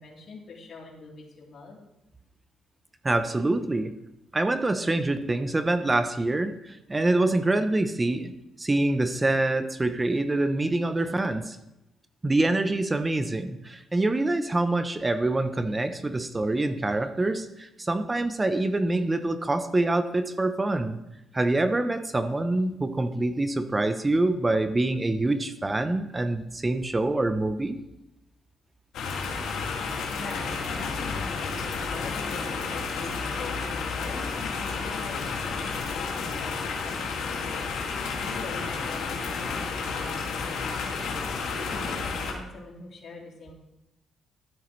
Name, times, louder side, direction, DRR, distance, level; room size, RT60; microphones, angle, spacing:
voice 1, 0.0-1.8 30.1-36.5 36.8-37.0 37.2-37.6 38.2-43.5, left 3 dB, 55° left, -2 dB, 3.4 m, -43 dB
voice 2, 3.0-3.9 4.3-11.6 12.2-21.0 21.3-27.8, right 2 dB, 20° right, 10 dB, 0.7 m, -25 dB
sound 1, 28.9-42.3, left 4 dB, 80° left, 2.2 m, -31 dB
13.0 x 9.2 x 3.2 m, 0.91 s
cardioid pair, 90°, 0 cm